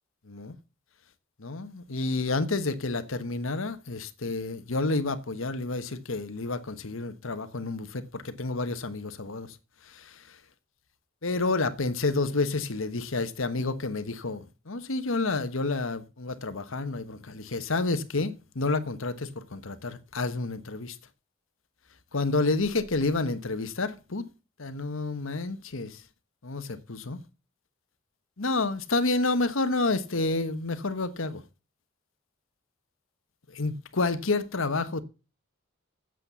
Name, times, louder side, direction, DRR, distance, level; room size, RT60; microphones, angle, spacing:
voice 1, 1.4-9.5 9.9-10.1 11.2-21.0 22.1-24.3 24.6-26.0 26.4-27.2 28.4-31.4 33.5-35.0, left 3 dB, 70° left, 1.2 m, -29 dB
8.6 x 7.6 x 6.8 m
head